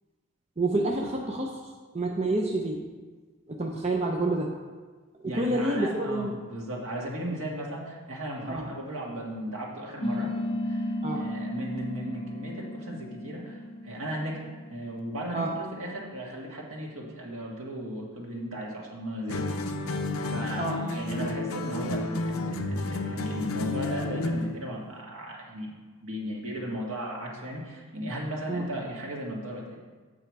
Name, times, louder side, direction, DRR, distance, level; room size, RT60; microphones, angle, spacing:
voice 1, 0.6-1.6 1.9-2.8 3.5-4.5 5.2-6.4 8.5-8.6 11.0-11.2 15.3-15.5 20.6-20.8 28.5-28.7, right 2 dB, 30° right, 0 dB, 0.5 m, -28 dB
voice 2, 5.2-14.4 14.7-19.4 20.2-25.8 26.0-29.8, equal, 75° right, -3 dB, 1.7 m, -36 dB
sound 1, 10.0-15.0, left 1 dB, 25° left, 0.5 m, -34 dB
sound 2, 19.3-24.6, left 2 dB, 80° left, 0.6 m, -31 dB
7.9 x 5.8 x 4.6 m, 1.4 s
head